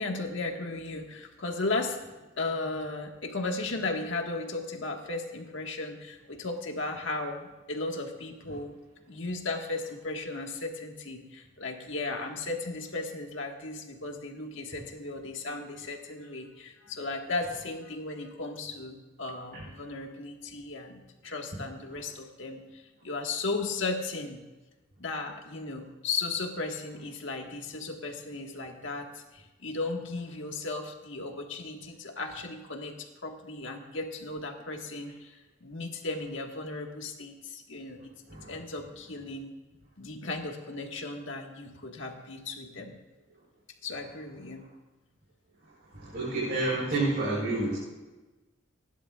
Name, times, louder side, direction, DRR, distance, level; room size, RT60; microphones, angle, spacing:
voice 1, 0.0-2.0 2.4-7.4 7.7-8.8 9.1-24.4 25.0-33.0 33.2-38.0 38.5-39.5 40.0-43.0 43.8-44.6, left 3 dB, 70° left, 2 dB, 1.7 m, -35 dB
voice 2, 45.9-47.8, right 2 dB, 50° right, -7 dB, 4.7 m, -29 dB
29.5 x 11.0 x 2.5 m, 1.1 s
head